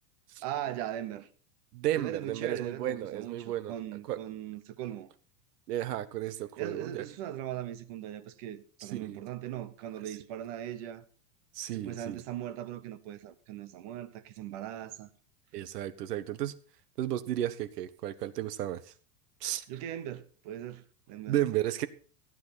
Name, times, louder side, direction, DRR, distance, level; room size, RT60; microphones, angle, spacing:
voice 1, 0.4-1.3 2.0-5.1 6.6-11.0 11.7-15.1 19.7-21.3, right 11 dB, 25° right, 0.6 m, -39 dB
voice 2, 1.7-3.7 4.1-4.2 5.7-7.0 8.8-9.2 11.5-12.2 15.5-16.6 17.0-18.9 19.4-19.6 21.3-21.9, right 13 dB, 75° right, 1.4 m, -33 dB
15.0 x 9.3 x 4.1 m
supercardioid pair, 180°, 47 cm